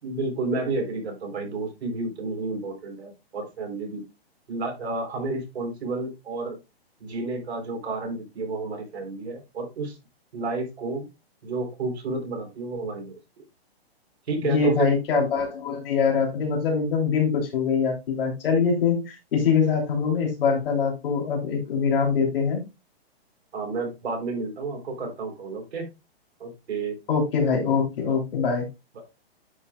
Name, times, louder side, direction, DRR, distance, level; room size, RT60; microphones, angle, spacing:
voice 1, 0.0-4.0 4.5-6.6 7.0-10.0 10.3-11.1 11.4-13.2 14.3-14.9 23.5-25.9 26.4-27.0 28.0-28.2 28.9-29.0, right 3 dB, 80° right, 3 dB, 3.9 m, -31 dB
voice 2, 14.4-22.6 27.1-28.7, left 5 dB, 60° left, 1 dB, 3.2 m, -23 dB
9.7 x 5.9 x 2.4 m, 0.25 s
hypercardioid pair, 155°, 32 cm